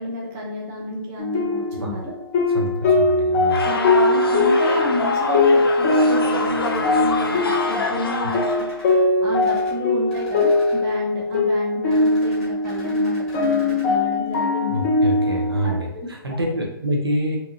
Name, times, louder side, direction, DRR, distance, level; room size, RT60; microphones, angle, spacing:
voice 1, 0.0-2.1 3.6-14.8 15.6-16.1, left 1 dB, 20° right, -2 dB, 0.6 m, -30 dB
sound 1, 1.2-15.8, left 2 dB, 35° left, 0.6 m, -21 dB
voice 2, 2.5-3.6 14.7-17.4, right 1 dB, 85° right, 0 dB, 0.8 m, -26 dB
sound 2, 3.5-8.8, left 3 dB, 75° left, 0.5 m, -26 dB
sound 3, 6.6-7.8 8.3-8.9 9.4-9.7 10.1-10.8 11.9-13.9, equal, 5° left, 1.1 m, -43 dB
2.8 x 2.3 x 2.6 m, 0.80 s
figure-of-eight pair, 135°, 12 cm